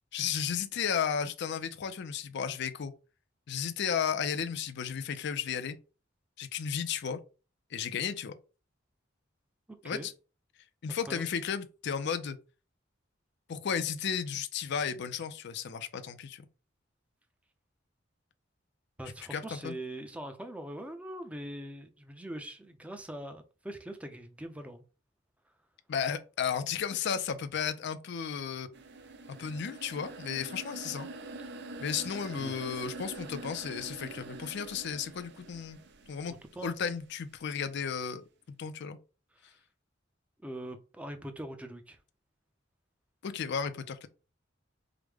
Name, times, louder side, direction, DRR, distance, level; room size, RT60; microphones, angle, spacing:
voice 1, 0.1-2.9 3.5-5.8 6.4-7.2 7.7-8.4 9.8-10.1 10.8-12.4 13.5-16.5 19.3-19.7 25.9-28.7 29.3-31.1 31.8-35.8 36.1-36.3 36.6-39.0 43.2-44.1, left 7 dB, 60° left, 0.4 m, -34 dB
voice 2, 9.7-10.1 10.9-11.2 19.0-24.8 32.1-32.6 36.6-36.9 40.4-42.0, right 1 dB, 5° right, 0.5 m, -42 dB
sound 1, 28.7-36.7, right 2 dB, 60° right, 0.5 m, -45 dB
4.8 x 2.1 x 3.4 m
head